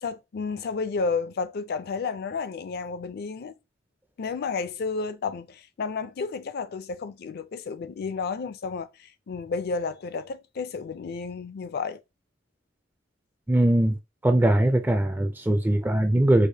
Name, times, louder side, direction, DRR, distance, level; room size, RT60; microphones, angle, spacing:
voice 1, 0.0-3.6 4.2-12.0, left 4 dB, 55° left, 0.4 m, -31 dB
voice 2, 13.5-14.0 14.2-16.5, right 1 dB, 10° right, 0.3 m, -21 dB
4.8 x 2.1 x 2.7 m
head